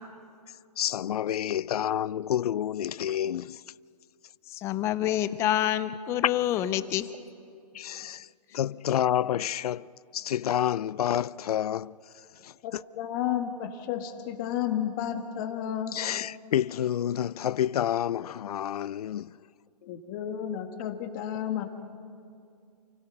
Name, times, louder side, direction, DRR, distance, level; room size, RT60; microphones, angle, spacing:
voice 1, 0.8-3.6 7.7-8.3 8.5-12.0 12.4-12.8 15.9-19.3, left 10 dB, 70° left, 0.4 m, -29 dB
voice 2, 4.5-7.1, left 12 dB, 15° left, 0.5 m, -27 dB
voice 3, 12.6-16.0 19.9-21.6, left 10 dB, 30° left, 1.7 m, -32 dB
29.0 x 16.5 x 5.9 m
hypercardioid pair, 155°, 20 cm